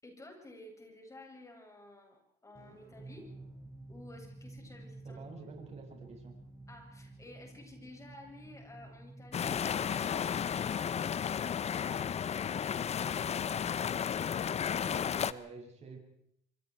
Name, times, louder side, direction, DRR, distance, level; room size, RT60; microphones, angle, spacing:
voice 1, 0.0-3.3 3.9-5.2 6.7-11.1, left 1 dB, 20° left, 2 dB, 7.3 m, -53 dB
sound 1, 2.5-11.2, right 2 dB, 20° right, 6.2 m, -52 dB
voice 2, 5.0-6.3 14.8-16.0, right 4 dB, 40° right, 2 dB, 6.8 m, -48 dB
sound 2, 9.3-15.3, left 8 dB, 40° left, 0.8 m, -33 dB
27.0 x 24.0 x 4.7 m, 0.71 s
cardioid pair, 110°, 17 cm